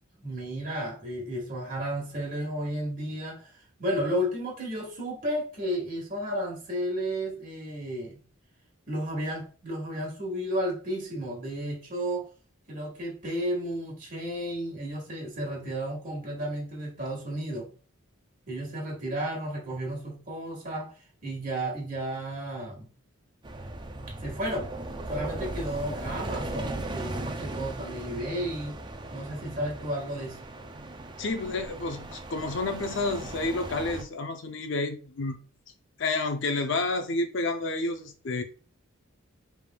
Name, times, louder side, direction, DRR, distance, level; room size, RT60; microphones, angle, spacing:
voice 1, 0.2-8.2 8.9-12.3 12.7-17.7 18.5-20.9 21.2-22.9 24.2-24.7 25.1-28.8 29.1-30.4, equal, 35° right, 1.6 m, -33 dB
sound 1, 23.4-34.0, right 2 dB, 20° right, 0.4 m, -37 dB
voice 2, 31.2-35.4 36.0-38.4, left 3 dB, 55° left, 0.5 m, -30 dB
4.8 x 3.4 x 2.2 m
head